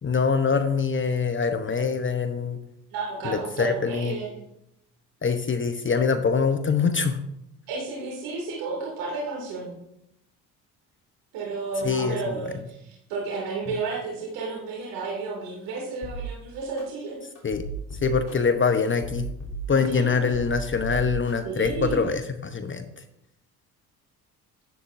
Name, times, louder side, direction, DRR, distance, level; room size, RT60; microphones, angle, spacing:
voice 1, 0.0-2.6 3.2-4.2 5.2-7.2 11.8-12.4 17.4-17.6 18.0-19.3 19.7-22.8, left 5 dB, 25° left, 9 dB, 0.9 m, -24 dB
voice 2, 2.9-4.4 7.7-9.7 11.3-17.2 19.9-20.3 21.4-22.1, right 4 dB, 70° right, -3 dB, 2.7 m, -32 dB
sound 1, 16.0-16.2 16.8-16.9 17.4-18.3 18.9-20.0 20.3-21.3 21.6-21.9, equal, 45° left, 3.3 m, -36 dB
11.0 x 10.5 x 2.6 m, 0.82 s
hypercardioid pair, 55°, 44 cm